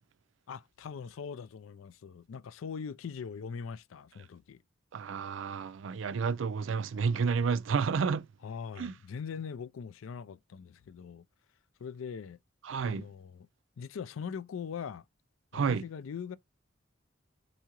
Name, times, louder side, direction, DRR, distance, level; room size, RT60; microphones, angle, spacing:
voice 1, 0.5-4.6 8.4-11.2 11.8-12.4 12.9-13.5 13.8-15.0 15.5-16.4, left 6 dB, 85° left, 0.4 m, -41 dB
voice 2, 4.9-8.3 8.8-8.9 12.6-13.1 15.5-15.8, right 5 dB, 70° right, 0.4 m, -30 dB
4.7 x 2.7 x 2.9 m
head